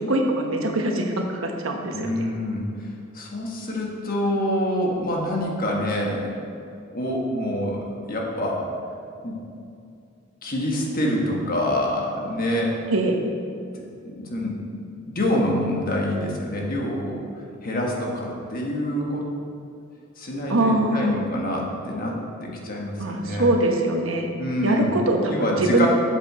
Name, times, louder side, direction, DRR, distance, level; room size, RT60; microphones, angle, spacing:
voice 1, 0.1-2.1 12.9-13.2 20.5-21.3 23.0-24.3 24.6-25.9, right 2 dB, 80° right, 2 dB, 1.1 m, -23 dB
voice 2, 1.9-2.6 3.1-6.4 6.9-8.7 9.2-9.4 10.4-12.8 14.0-14.8 15.1-17.2 17.6-19.3 20.2-23.5 24.4-24.9 25.3-25.9, left 1 dB, 45° left, -1 dB, 1.4 m, -26 dB
7.5 x 7.4 x 4.3 m, 2.5 s
head